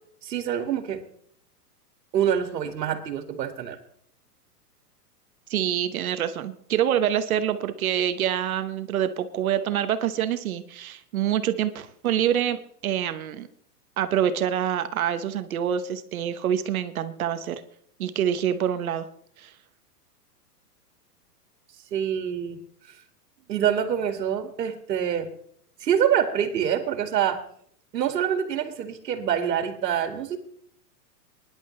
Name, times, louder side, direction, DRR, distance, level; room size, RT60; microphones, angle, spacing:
voice 1, 0.2-1.0 2.1-3.8 21.9-22.6 22.9-23.0 23.5-25.3 25.8-27.4 27.9-30.4, right 9 dB, 90° right, 6 dB, 2.1 m, -26 dB
voice 2, 5.5-13.5 14.0-17.6 18.0-19.1 19.4-19.5, right 10 dB, 60° right, 10 dB, 1.1 m, -26 dB
23.0 x 11.0 x 3.2 m, 0.65 s
supercardioid pair, 175°, 48 cm